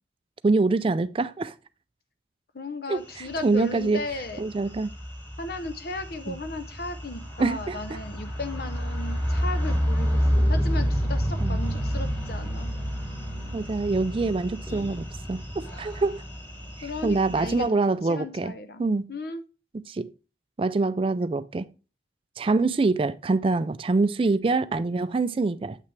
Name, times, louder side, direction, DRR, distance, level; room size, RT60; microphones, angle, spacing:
voice 1, 0.4-1.5 2.9-4.0 4.4-4.9 6.3-6.4 7.4-7.8 11.4-11.6 13.5-15.4 15.8-16.2 17.0-18.5 18.8-19.1 19.9-20.1 20.6-21.7 22.4-25.8, right 3 dB, 30° right, 0.3 m, -25 dB
voice 2, 2.5-4.4 5.4-12.7 16.8-18.8 19.1-19.4, left 2 dB, 55° left, 0.7 m, -36 dB
sound 1, 3.1-17.6, equal, 10° left, 2.9 m, -29 dB
7.7 x 5.7 x 3.3 m
head